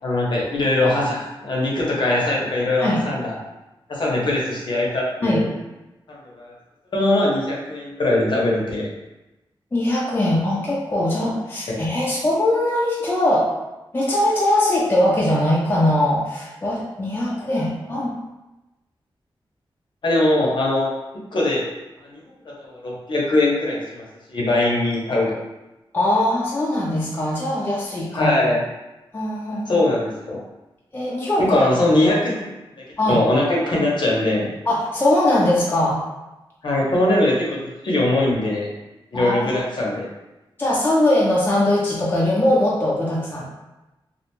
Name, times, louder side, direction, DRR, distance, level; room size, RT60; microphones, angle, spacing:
voice 1, 0.0-3.3 3.9-5.5 6.1-6.5 6.9-8.9 11.7-11.8 20.0-20.9 21.3-21.6 22.0-22.2 22.4-25.4 28.1-28.6 29.7-30.4 31.4-32.5 33.1-34.5 36.6-38.7 39.1-40.1, left 2 dB, 60° left, -4 dB, 0.7 m, -21 dB
voice 2, 9.7-13.5 13.9-18.1 25.9-28.3 29.1-29.8 30.9-31.7 33.0-33.2 34.7-36.0 39.1-39.5 40.6-43.5, left 1 dB, 20° left, -5 dB, 0.4 m, -21 dB
2.4 x 2.2 x 2.9 m, 1.0 s
wide cardioid pair, 140°, 9 cm